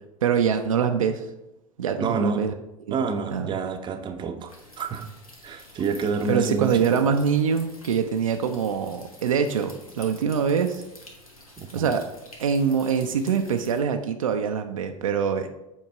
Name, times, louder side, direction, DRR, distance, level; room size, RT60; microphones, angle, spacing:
voice 1, 0.2-1.3 1.8-2.5 2.9-3.0 3.3-3.6 6.3-10.8 11.7-12.0 12.4-15.5, right 7 dB, 70° right, 6 dB, 0.5 m, -24 dB
voice 2, 2.0-2.5 2.9-5.1 5.4-7.0 11.6-11.9, right 4 dB, 25° right, 7 dB, 0.7 m, -28 dB
sound 1, 4.5-13.8, left 1 dB, 85° left, 1.2 m, -49 dB
7.3 x 4.6 x 3.4 m, 0.92 s
figure-of-eight pair, 80°, 18 cm